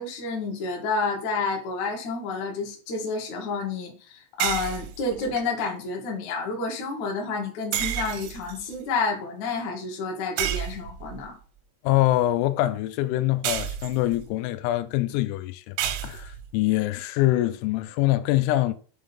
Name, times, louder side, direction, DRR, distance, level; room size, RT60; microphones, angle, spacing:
voice 1, 0.0-11.4, left 4 dB, 60° left, 2.0 m, -30 dB
sound 1, 4.4-5.4 7.7-8.7 10.4-11.2 13.4-14.3 15.8-16.5, right 11 dB, 85° right, 3.2 m, -30 dB
voice 2, 11.8-18.7, left 16 dB, 90° left, 3.3 m, -24 dB
7.6 x 3.7 x 5.2 m
omnidirectional pair, 5.9 m